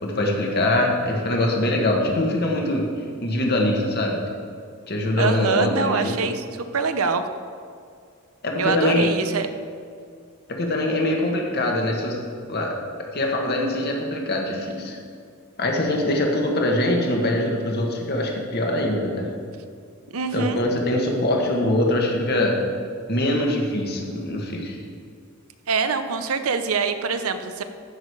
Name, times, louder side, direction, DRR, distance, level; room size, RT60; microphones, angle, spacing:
voice 1, 0.0-2.9 3.2-4.2 4.9-6.2 8.4-9.1 10.5-12.2 12.5-12.7 13.1-15.0 15.6-19.3 20.3-22.6 23.1-24.8, left 1 dB, 50° left, 0 dB, 1.8 m, -23 dB
voice 2, 5.2-6.4 6.7-7.2 8.6-9.5 20.1-20.6 25.7-27.6, right 5 dB, 90° right, 9 dB, 0.8 m, -24 dB
15.0 x 6.5 x 4.8 m, 2.3 s
head